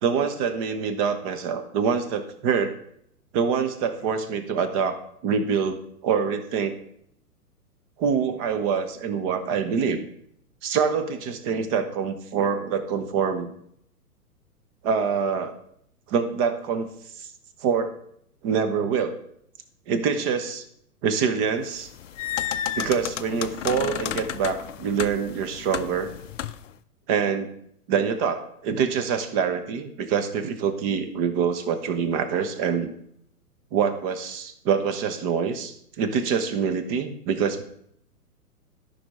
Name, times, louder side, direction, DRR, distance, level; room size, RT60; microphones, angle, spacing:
voice 1, 0.0-2.7 3.3-6.7 8.0-10.1 10.6-13.5 14.8-15.6 16.1-16.9 17.2-17.3 17.6-17.9 18.4-19.2 19.9-20.6 21.0-21.9 22.7-26.1 27.1-27.5 27.9-32.9 33.7-37.6, right 6 dB, 25° right, 9 dB, 0.7 m, -25 dB
sound 1, 21.8-26.7, left 10 dB, 55° left, 0.5 m, -32 dB
12.5 x 5.6 x 3.5 m, 0.69 s
figure-of-eight pair, 115°, 46 cm